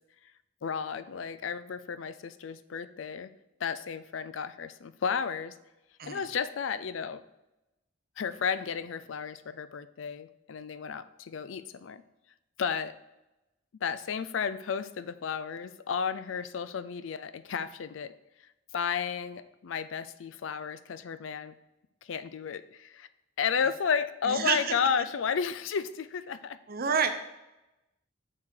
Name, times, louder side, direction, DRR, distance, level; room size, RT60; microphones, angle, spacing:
voice 1, 0.6-3.3 3.6-5.5 6.1-7.2 8.2-12.0 12.6-13.0 13.8-18.1 18.7-21.5 22.0-23.1 23.4-26.6, left 6 dB, 75° left, 14 dB, 0.4 m, -33 dB
voice 2, 24.2-24.7 26.7-27.1, right 6 dB, 50° right, 8 dB, 0.8 m, -28 dB
6.4 x 5.9 x 4.5 m, 0.97 s
head